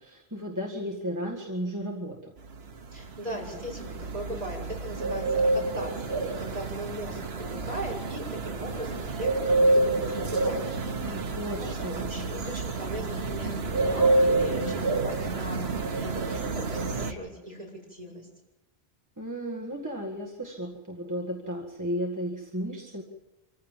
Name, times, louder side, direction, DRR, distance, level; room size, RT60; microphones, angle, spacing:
voice 1, 0.0-2.3 10.8-12.1 19.2-23.0, equal, 15° right, -1 dB, 1.8 m, -34 dB
sound 1, 2.4-17.1, right 2 dB, 80° right, 1.4 m, -28 dB
voice 2, 2.9-10.7 11.0-11.3 11.6-18.3, equal, 40° right, -1 dB, 6.7 m, -38 dB
25.5 x 15.0 x 7.4 m, 1.0 s
omnidirectional pair, 1.0 m